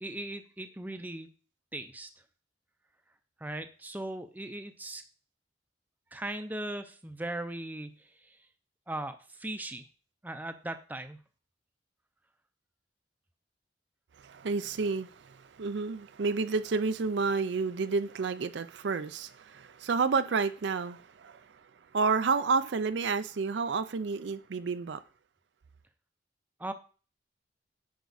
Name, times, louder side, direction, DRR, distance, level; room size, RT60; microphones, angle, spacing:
voice 1, 0.0-1.3 1.7-2.1 3.4-5.0 6.1-8.0 8.9-9.8 10.2-11.2 26.6-26.7, right 1 dB, 10° right, 0.6 m, -38 dB
voice 2, 14.2-21.6 21.9-25.0, right 4 dB, 80° right, 0.5 m, -30 dB
9.5 x 4.5 x 4.0 m
head